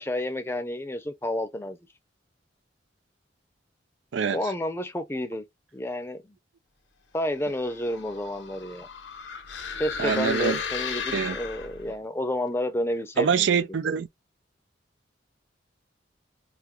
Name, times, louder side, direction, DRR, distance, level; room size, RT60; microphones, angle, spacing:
voice 1, 0.0-1.8 4.3-5.4 5.7-6.4 7.1-8.9 9.8-13.7, left 1 dB, 15° left, 0.6 m, -30 dB
sound 1, 7.5-12.0, left 6 dB, 75° left, 0.7 m, -35 dB
voice 2, 10.0-10.6 11.1-11.4 13.2-14.1, right 6 dB, 80° right, 0.4 m, -24 dB
3.7 x 2.1 x 2.9 m
head